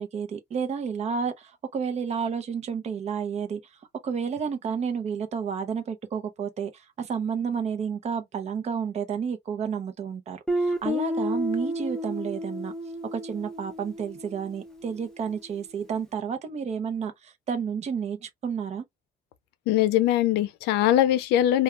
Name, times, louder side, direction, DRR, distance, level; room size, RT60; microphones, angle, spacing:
voice 1, 0.0-12.7 13.1-18.8, right 6 dB, 40° right, 0.6 m, -31 dB
Guitar, 10.5-15.1, equal, 5° left, 0.8 m, -31 dB
voice 2, 19.7-21.6, left 12 dB, 90° left, 0.5 m, -21 dB
2.3 x 2.2 x 3.0 m
cardioid pair, 110°, 17 cm